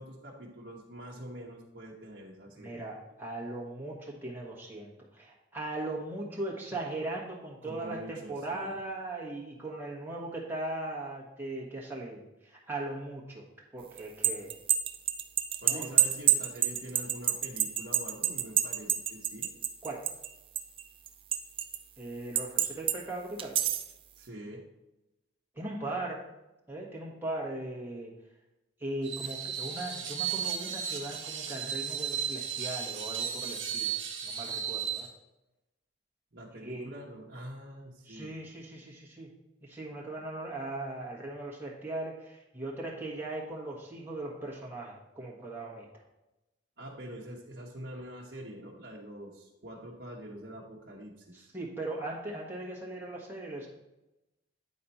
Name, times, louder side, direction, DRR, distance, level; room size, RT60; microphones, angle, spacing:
voice 1, 0.0-2.8 7.6-8.7 15.6-19.5 24.2-24.6 36.3-38.3 46.8-51.5, right 1 dB, 65° right, -5 dB, 1.1 m, -45 dB
voice 2, 2.6-13.4 13.7-14.6 15.7-15.9 19.8-20.0 22.0-23.6 25.5-26.3 26.7-28.1 28.8-35.1 36.6-36.9 38.0-39.3 39.6-45.9 51.3-53.7, right 2 dB, 10° right, -4 dB, 1.4 m, -39 dB
sound 1, 14.0-20.3 20.6-21.8 22.4-23.0 23.4-23.9, right 11 dB, 30° right, 0.3 m, -27 dB
Screech, 29.0-35.1, right 8 dB, 85° right, 1.4 m, -35 dB
9.4 x 4.3 x 4.2 m, 0.98 s
head